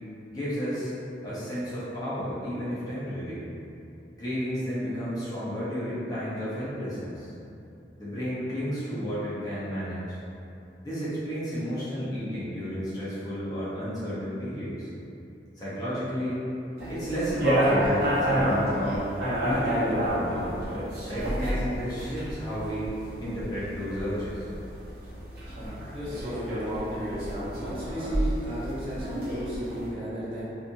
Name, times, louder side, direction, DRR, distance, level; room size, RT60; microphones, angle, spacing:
voice 1, 0.3-0.9 1.2-3.5 4.2-7.3 8.0-10.2 10.8-14.9 15.6-16.4 16.9-19.1 19.4-20.6 21.1-22.9 23.2-24.5, equal, 20° left, -11 dB, 0.7 m, -32 dB
sound 1, 16.8-29.9, equal, 55° right, 0.9 m, -30 dB
voice 2, 25.9-27.3 27.6-30.4, right 1 dB, 30° right, -9 dB, 0.5 m, -35 dB
2.7 x 2.4 x 2.6 m, 2.7 s
head